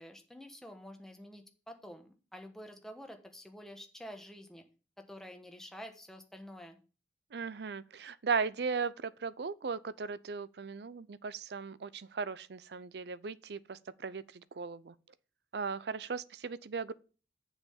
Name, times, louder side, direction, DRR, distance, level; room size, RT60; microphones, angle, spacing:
voice 1, 0.0-4.6 5.0-6.8, equal, ahead, 1.2 m, -49 dB
voice 2, 7.3-14.9 15.5-16.9, right 5 dB, 65° right, 0.5 m, -37 dB
7.0 x 5.7 x 7.2 m
head